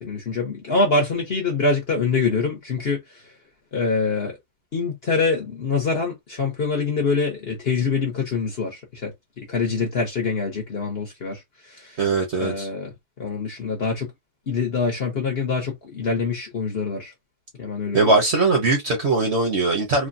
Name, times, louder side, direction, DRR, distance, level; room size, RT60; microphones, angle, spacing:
voice 1, 0.0-3.2 3.7-4.4 4.7-12.0 12.4-12.9 13.2-14.1 14.5-17.1 17.6-18.2, left 4 dB, 50° left, 0.8 m, -25 dB
voice 2, 12.0-12.7 17.9-20.1, right 3 dB, 50° right, 0.9 m, -20 dB
3.2 x 2.2 x 2.5 m
omnidirectional pair, 1.8 m